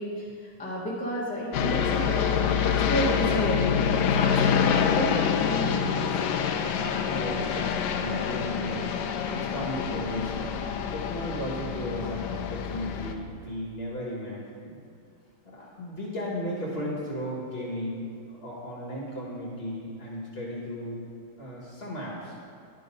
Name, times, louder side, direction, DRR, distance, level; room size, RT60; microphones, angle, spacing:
voice 1, 0.0-2.3 2.6-6.1, equal, 5° left, -7 dB, 1.0 m, -32 dB
sound 1, 1.5-13.1, left 7 dB, 75° left, 1.0 m, -26 dB
voice 2, 7.0-14.8 15.5-21.0 21.4-22.4, equal, 35° left, -6 dB, 1.5 m, -35 dB
11.5 x 3.8 x 5.2 m, 2.4 s
omnidirectional pair, 2.2 m